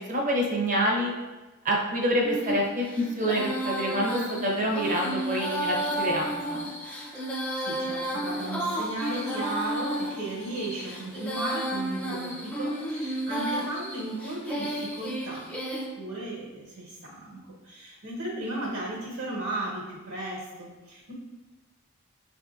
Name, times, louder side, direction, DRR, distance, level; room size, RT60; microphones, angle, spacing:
voice 1, 0.1-1.1 1.6-6.6, equal, 35° right, -1 dB, 0.7 m, -27 dB
Female singing, 2.2-15.9, right 1 dB, 5° left, 0.4 m, -32 dB
Cricket, 4.0-4.4 4.8-5.2 5.6-6.0 6.5-6.8 7.2-7.6 8.0-8.4 8.8-9.2 9.6-10.0 10.4-10.8 11.2-11.6 12.0-12.4 12.8-13.2 13.6-14.0 14.5-14.9, left 1 dB, 30° left, 0.8 m, -45 dB
voice 2, 7.3-15.4 15.7-21.1, right 2 dB, 70° right, -5 dB, 1.2 m, -35 dB
6.0 x 2.6 x 2.4 m, 1.2 s
head